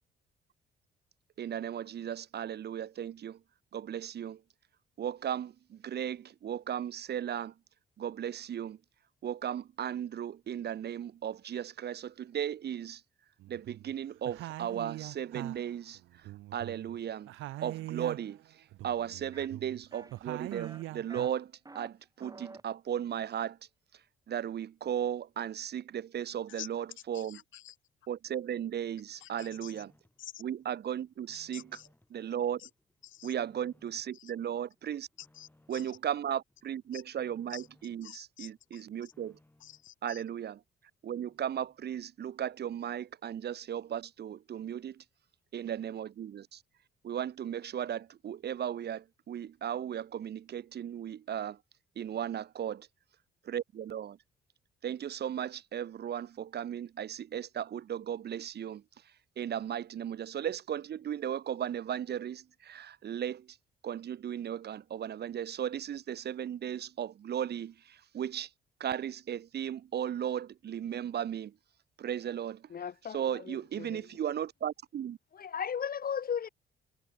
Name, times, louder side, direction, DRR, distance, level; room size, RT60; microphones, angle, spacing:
voice 1, 1.4-3.4 3.7-4.4 5.0-7.5 8.0-8.8 9.2-13.0 13.5-16.0 16.5-17.3 17.6-18.4 18.8-23.6 24.3-27.4 28.1-29.9 30.4-31.6 32.1-32.6 33.2-35.1 35.7-39.4 40.0-40.6 41.0-45.0 45.5-46.6 47.0-51.6 52.0-52.8 53.5-54.2 54.8-58.8 59.4-63.5 63.8-68.5 68.8-71.5 72.0-72.6 73.1-75.2, right 9 dB, 55° right, 1.1 m, -36 dB
sound 1, 13.4-13.9 14.2-17.0 17.3-18.4 18.7-21.3, right 17 dB, 90° right, 0.9 m, -43 dB
sound 2, 19.3-19.5 19.9-20.2 20.5-20.8 21.1-21.9 22.2-22.6, right 3 dB, 20° right, 2.8 m, -49 dB
voice 2, 27.1-27.8 29.2-29.8 30.2-30.4 31.3-31.9 32.6-32.7 33.0-33.3 34.1-34.3 35.2-36.0 36.9-37.0 37.5-37.7 38.0-39.1 39.6-40.2, left 13 dB, 80° left, 3.1 m, -49 dB
sound 3, 28.6-30.2 30.6-32.2 32.6-34.2 34.5-36.1 36.5-38.1 38.5-40.0 40.4-40.5 40.8-40.9 41.1-42.0 42.3-42.4, left 1 dB, 10° left, 7.9 m, -68 dB
voice 3, 72.7-74.1 75.3-76.5, left 7 dB, 50° left, 1.7 m, -36 dB
cardioid pair, 90°, 20 cm